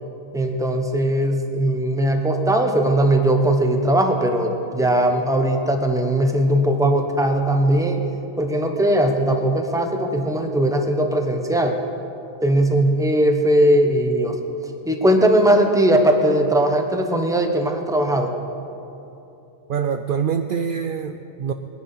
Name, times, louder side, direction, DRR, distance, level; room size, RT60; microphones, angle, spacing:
voice 1, 0.3-8.0 8.4-11.8 12.4-14.3 14.8-18.3, right 1 dB, 5° right, 3 dB, 0.9 m, -19 dB
voice 2, 19.7-21.5, right 7 dB, 70° right, 7 dB, 0.5 m, -25 dB
20.0 x 10.5 x 5.6 m, 2.9 s
omnidirectional pair, 1.4 m